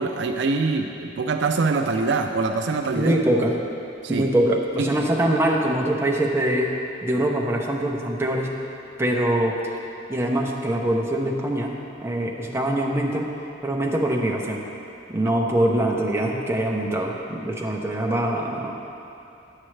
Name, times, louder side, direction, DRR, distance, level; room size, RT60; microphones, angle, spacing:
voice 1, 0.0-3.1 4.0-4.3, right 3 dB, 65° right, 5 dB, 0.4 m, -24 dB
voice 2, 2.9-3.6 4.1-6.7 7.0-8.5 9.0-9.6 10.1-13.4 13.6-14.6 15.1-18.8, right 1 dB, 15° right, -2 dB, 0.6 m, -23 dB
9.7 x 7.4 x 3.2 m, 2.7 s
head